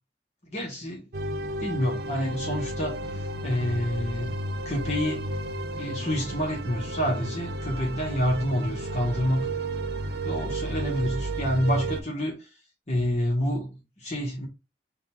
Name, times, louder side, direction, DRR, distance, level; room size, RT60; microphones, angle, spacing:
voice 1, 0.5-1.1 1.6-4.3 4.6-5.3 5.7-9.5 10.2-12.5 12.9-14.5, equal, 40° left, 1.0 m, -28 dB
sound 1, 1.1-12.0, right 1 dB, 65° right, 0.5 m, -32 dB
3.7 x 2.2 x 4.3 m
head